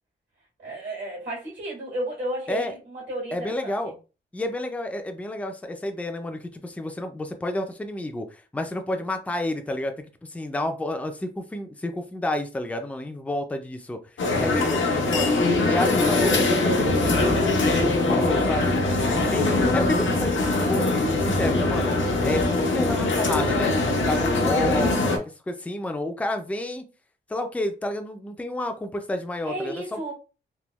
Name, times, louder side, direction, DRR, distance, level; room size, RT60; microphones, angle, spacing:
voice 1, 0.6-3.9 22.1-22.4 29.5-30.1, right 1 dB, 75° right, 1.7 m, -34 dB
voice 2, 3.3-3.9 4.3-15.4 15.6-18.8 19.1-22.0 22.2-23.7 24.0-25.2 25.5-26.8 27.3-30.1, left 1 dB, 5° left, 0.3 m, -30 dB
sound 1, 14.2-25.2, left 2 dB, 90° left, 0.7 m, -22 dB
3.4 x 2.1 x 3.0 m
wide cardioid pair, 165°, 19 cm